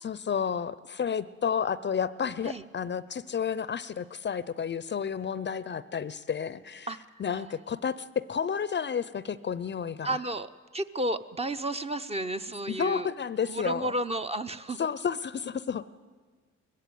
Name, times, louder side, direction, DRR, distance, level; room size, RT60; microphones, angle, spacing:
voice 1, 0.0-6.9 7.2-10.2 12.7-13.9 14.8-15.8, left 7 dB, 35° left, 16 dB, 0.6 m, -31 dB
voice 2, 10.0-10.5 10.7-13.1 13.5-14.8, right 1 dB, 20° right, 9 dB, 0.8 m, -32 dB
19.5 x 15.0 x 9.4 m, 1.5 s
cardioid pair, 90°, 30 cm